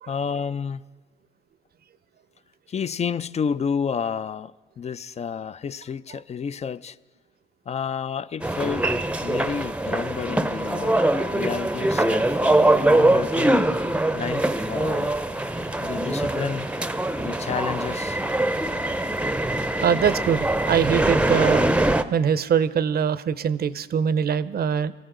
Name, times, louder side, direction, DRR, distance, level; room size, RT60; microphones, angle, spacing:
voice 1, 0.1-0.8 2.7-7.0 7.7-8.9 9.2-13.5 14.1-15.2 15.8-16.7 17.2-18.2, left 6 dB, 35° left, 0.4 m, -30 dB
sound 1, 8.4-22.0, right 1 dB, 5° right, 0.6 m, -23 dB
sound 2, 14.5-19.7, left 4 dB, 75° left, 2.4 m, -48 dB
voice 2, 19.8-21.7 22.1-24.9, right 7 dB, 50° right, 0.6 m, -23 dB
23.0 x 14.5 x 3.8 m
cardioid pair, 90°, 20 cm